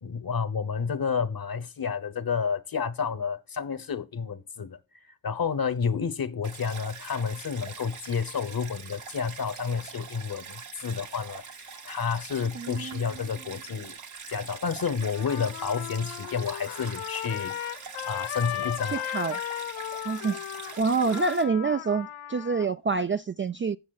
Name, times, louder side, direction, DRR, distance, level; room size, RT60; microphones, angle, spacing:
voice 1, 0.0-4.8 5.2-14.0 14.3-17.8 18.0-19.1, left 6 dB, 45° left, 1.1 m, -30 dB
Stream, 6.4-21.4, right 6 dB, 75° right, 1.9 m, -43 dB
voice 2, 12.5-13.0 18.9-19.4 20.0-20.4 20.8-23.8, right 4 dB, 25° right, 0.4 m, -27 dB
Trumpet, 15.0-22.7, left 12 dB, 80° left, 0.6 m, -36 dB
17.0 x 6.3 x 2.4 m
supercardioid pair, 45°, 48 cm